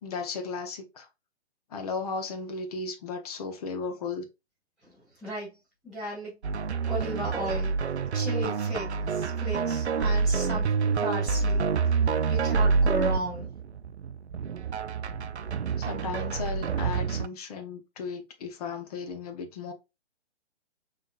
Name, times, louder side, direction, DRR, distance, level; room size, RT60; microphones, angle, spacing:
voice 1, 0.0-1.1 1.7-4.3 15.8-19.7, left 4 dB, 35° left, 1.0 m, -35 dB
voice 2, 4.8-5.6 5.8-6.4 6.8-11.6 12.3-13.5, right 1 dB, ahead, 0.4 m, -35 dB
sound 1, 6.4-17.3, right 5 dB, 75° right, 0.5 m, -27 dB
5.5 x 3.3 x 2.4 m
figure-of-eight pair, 125°, 34 cm